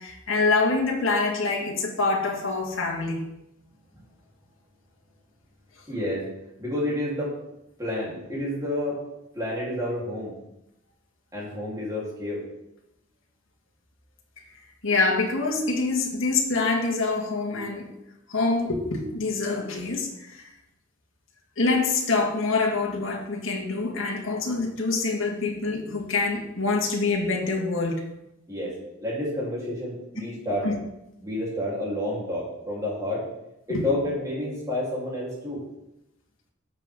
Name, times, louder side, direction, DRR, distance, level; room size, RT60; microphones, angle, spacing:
voice 1, 0.0-3.2 14.8-17.9 18.3-20.5 21.6-28.0 30.6-30.8 33.7-33.9, left 3 dB, 75° left, -1 dB, 1.9 m, -25 dB
voice 2, 5.9-6.3 6.6-7.3 7.8-9.0 9.3-10.3 11.3-12.4 28.5-30.7 31.2-33.3 33.7-35.6, left 1 dB, 15° right, -6 dB, 3.7 m, -29 dB
12.5 x 7.1 x 3.8 m, 0.87 s
head